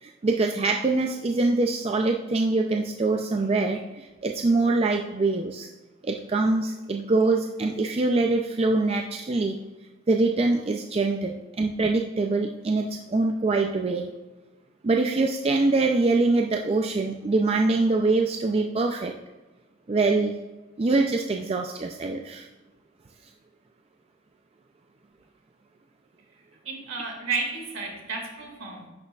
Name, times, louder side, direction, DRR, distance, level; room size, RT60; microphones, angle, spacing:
voice 1, 0.0-5.7 6.0-9.6 10.1-14.1 14.8-19.1 19.9-20.4 20.8-22.5, right 3 dB, 30° right, 3 dB, 0.3 m, -24 dB
voice 2, 26.7-28.9, right 4 dB, 75° right, 1 dB, 2.0 m, -32 dB
10.5 x 6.4 x 2.3 m, 1.1 s
head